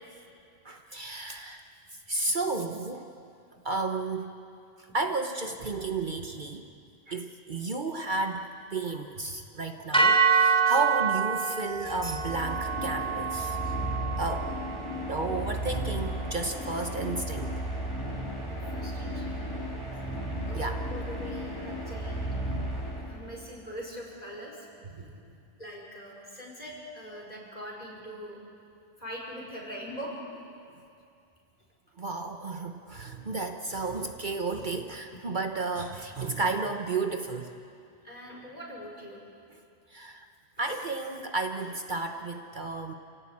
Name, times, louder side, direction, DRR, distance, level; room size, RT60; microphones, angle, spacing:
voice 1, 0.6-1.7 2.1-3.1 3.6-4.3 4.8-6.6 7.1-13.6 14.2-14.5 15.1-17.5 20.5-20.8 24.9-25.1 32.0-37.5 39.9-40.2 40.6-42.9, right 3 dB, 50° right, 5 dB, 1.2 m, -32 dB
sound 1, 9.9-18.2, right 5 dB, 5° left, 2.7 m, -28 dB
sound 2, 11.8-23.5, right 1 dB, 20° left, 4.0 m, -34 dB
voice 2, 18.5-19.5 20.5-22.4 23.1-24.7 25.0-25.1 25.6-28.4 29.0-30.1 34.6-34.7 35.1-35.2 36.3-36.4 38.0-39.2, equal, 40° left, -2 dB, 5.2 m, -42 dB
28.5 x 17.0 x 8.6 m, 2.5 s
omnidirectional pair, 1.1 m